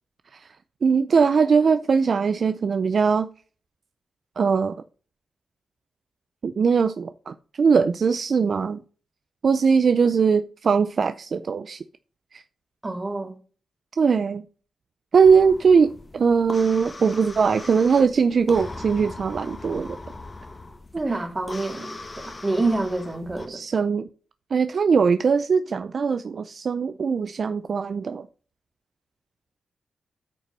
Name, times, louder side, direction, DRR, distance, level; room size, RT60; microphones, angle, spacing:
voice 1, 0.8-3.3 4.4-4.8 6.4-8.8 9.4-11.8 12.3-12.4 14.0-14.4 15.1-20.0 21.1-21.2 23.5-24.1 24.5-28.3, right 5 dB, 55° right, 0.5 m, -21 dB
voice 2, 12.8-13.4 20.9-23.6, right 2 dB, 25° right, 2.4 m, -27 dB
sound 1, 15.2-23.5, left 2 dB, 30° left, 1.4 m, -40 dB
9.2 x 5.2 x 5.5 m
cardioid pair, 80°, 0 cm